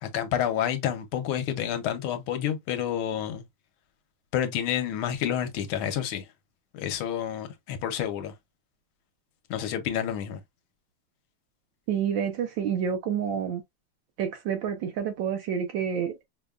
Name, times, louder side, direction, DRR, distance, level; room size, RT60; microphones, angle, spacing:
voice 1, 0.0-3.4 4.3-6.3 6.7-8.3 9.5-10.4, left 10 dB, 75° left, 1.5 m, -29 dB
voice 2, 11.9-13.6 14.2-16.2, right 8 dB, 75° right, 1.2 m, -28 dB
5.1 x 2.2 x 2.2 m
omnidirectional pair, 2.4 m